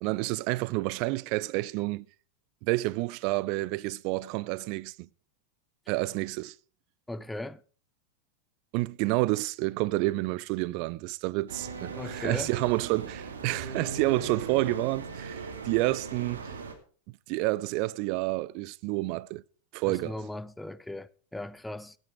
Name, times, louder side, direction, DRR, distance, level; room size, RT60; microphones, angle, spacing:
voice 1, 0.0-2.1 2.6-5.1 5.9-6.5 8.7-16.5 17.3-19.4 19.7-20.1, right 20 dB, 45° right, 0.5 m, -29 dB
voice 2, 7.1-7.6 12.0-12.5 19.9-22.0, left 1 dB, 5° left, 0.6 m, -38 dB
sound 1, 11.5-16.7, right 4 dB, 65° right, 2.7 m, -39 dB
16.5 x 9.1 x 4.9 m
figure-of-eight pair, 90°, 0 cm